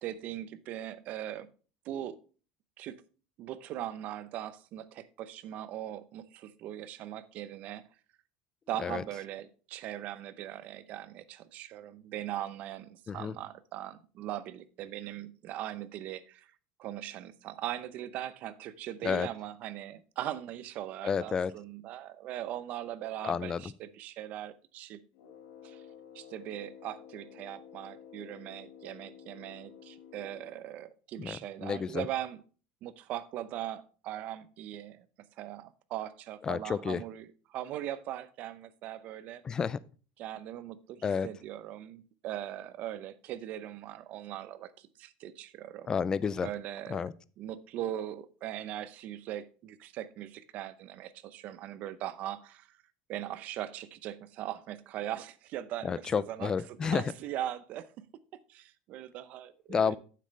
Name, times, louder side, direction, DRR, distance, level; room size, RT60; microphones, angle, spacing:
voice 1, 0.0-1.5 1.8-2.2 2.8-3.0 3.4-7.9 8.7-16.5 16.8-25.0 25.6-25.8 26.1-32.4 32.8-35.0 35.4-39.4 40.2-45.9 46.4-47.1 47.4-52.8 53.1-58.0 58.5-60.0, right 12 dB, 45° right, 0.7 m, -40 dB
voice 2, 21.0-21.5 23.2-23.6 31.2-32.1 36.5-37.0 39.4-39.8 41.0-41.3 45.9-46.5 46.9-47.1 55.8-57.0 59.7-60.0, left 6 dB, 20° left, 0.4 m, -30 dB
Brass instrument, 25.1-30.7, left 8 dB, 85° left, 1.7 m, -52 dB
9.2 x 7.6 x 3.2 m
cardioid pair, 150°, 4 cm